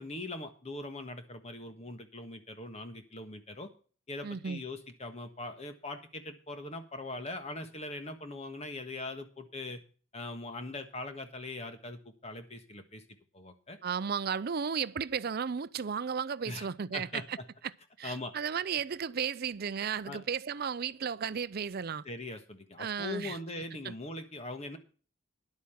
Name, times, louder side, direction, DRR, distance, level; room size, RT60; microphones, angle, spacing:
voice 1, 0.0-3.7 4.1-9.8 10.1-13.0 13.3-13.8 16.4-16.7 16.9-17.4 18.0-18.3 20.0-20.2 22.0-24.8, left 2 dB, 30° left, 1.5 m, -41 dB
voice 2, 4.2-4.6 13.8-17.4 17.6-17.7 18.0-22.0 22.8-23.4 23.8-23.9, right 6 dB, 50° right, 0.5 m, -34 dB
11.0 x 8.4 x 5.7 m
head